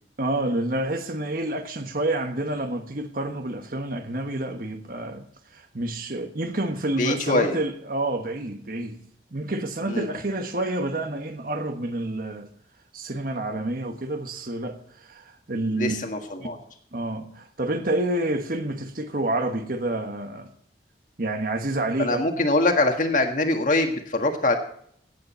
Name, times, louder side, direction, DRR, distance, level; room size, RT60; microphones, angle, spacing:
voice 1, 0.2-5.3 5.5-9.0 9.3-12.5 12.9-16.0 16.4-16.5 16.9-20.5 21.2-22.3, right 1 dB, 55° right, 1.3 m, -28 dB
voice 2, 7.0-7.6 9.9-10.1 15.7-16.6 22.0-24.6, left 2 dB, 45° left, 1.7 m, -23 dB
16.5 x 8.4 x 4.3 m
head